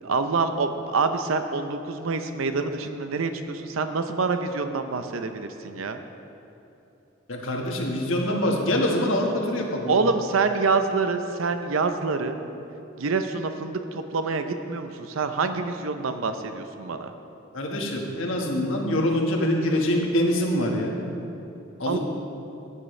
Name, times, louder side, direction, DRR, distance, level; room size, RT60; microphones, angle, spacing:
voice 1, 0.0-6.0 9.9-12.4 13.0-17.1 21.9-22.0, right 4 dB, 80° right, 8 dB, 0.6 m, -26 dB
voice 2, 7.3-10.0 17.5-21.0 21.8-22.0, left 1 dB, 75° left, 0 dB, 1.5 m, -24 dB
15.5 x 9.7 x 3.2 m, 2.9 s
head